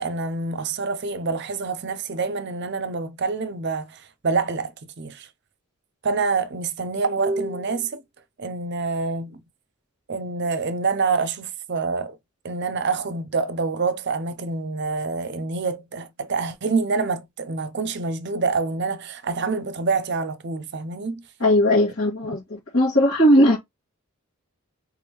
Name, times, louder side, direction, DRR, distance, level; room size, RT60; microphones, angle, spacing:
voice 1, 0.0-4.7 5.0-5.3 6.0-8.0 8.4-9.4 10.1-12.2 12.4-21.2, right 4 dB, 50° right, 0.5 m, -26 dB
voice 2, 21.4-23.6, equal, 70° left, 2.1 m, -18 dB
3.6 x 3.5 x 3.0 m
head